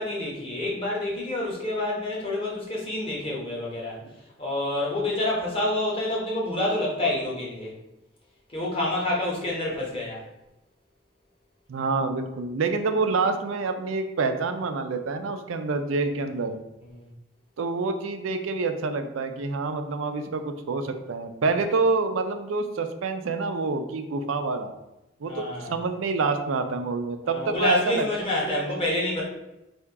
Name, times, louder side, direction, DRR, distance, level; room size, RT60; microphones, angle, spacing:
voice 1, 0.0-4.0 4.4-7.7 8.5-10.2 16.9-17.1 25.2-25.7 27.2-29.2, left 1 dB, 25° left, -4 dB, 1.2 m, -28 dB
voice 2, 11.7-16.6 17.6-24.7 25.2-28.6, right 3 dB, 80° right, 7 dB, 0.4 m, -27 dB
3.5 x 2.8 x 4.6 m, 0.94 s
head